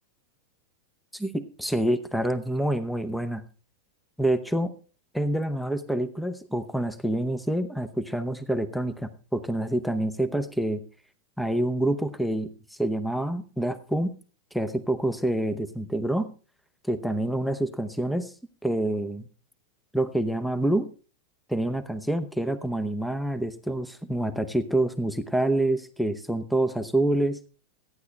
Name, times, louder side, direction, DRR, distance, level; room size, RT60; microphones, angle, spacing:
voice 1, 1.1-3.4 4.2-4.7 5.1-10.8 11.4-12.5 12.8-14.1 14.5-16.3 16.8-18.3 18.6-19.3 19.9-20.9 21.5-27.4, right 1 dB, ahead, 11 dB, 0.8 m, -27 dB
14.0 x 9.8 x 3.3 m, 0.35 s
supercardioid pair, 160°, 0 cm